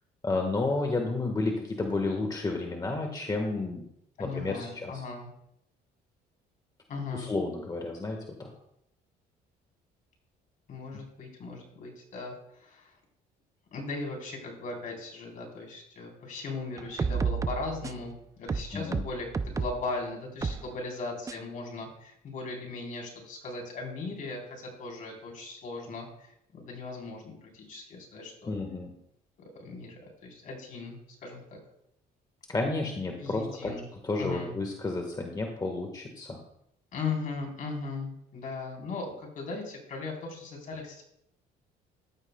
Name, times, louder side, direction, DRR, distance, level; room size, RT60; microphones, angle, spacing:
voice 1, 0.2-3.9 4.2-5.0 7.1-8.5 18.7-19.0 28.5-28.9 32.5-33.7 34.0-36.4, left 3 dB, 20° left, 3 dB, 1.4 m, -31 dB
voice 2, 4.2-5.3 6.9-7.3 10.7-12.9 13.7-28.5 29.5-29.9 30.2-31.6 33.2-33.8 34.2-34.5 36.9-41.0, left 3 dB, 50° left, 0 dB, 3.8 m, -38 dB
sound 1, 16.8-18.1 18.5-19.8 20.4-20.6 21.3-21.4, right 5 dB, 20° right, 0.5 m, -31 dB
15.0 x 12.5 x 2.3 m, 0.76 s
cardioid pair, 110°, 17 cm